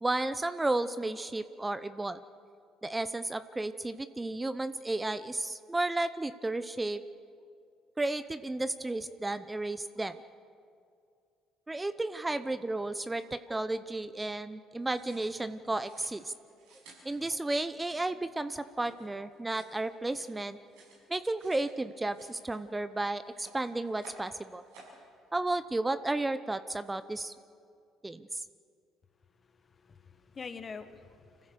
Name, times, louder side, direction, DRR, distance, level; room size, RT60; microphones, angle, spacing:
voice 1, 0.0-2.2 2.8-7.0 8.0-10.2 11.7-16.3 17.0-20.6 21.1-24.6 25.3-27.3 28.0-28.4, right 2 dB, 15° right, 13 dB, 0.7 m, -33 dB
sound 1, 14.8-21.7 22.0-22.9 23.2-24.3 24.6-25.0, right 2 dB, 80° right, 6.5 m, -56 dB
voice 2, 29.2-31.5, left 5 dB, 35° left, 10 dB, 1.4 m, -46 dB
26.0 x 15.0 x 6.9 m, 2.4 s
hypercardioid pair, 65°, 0 cm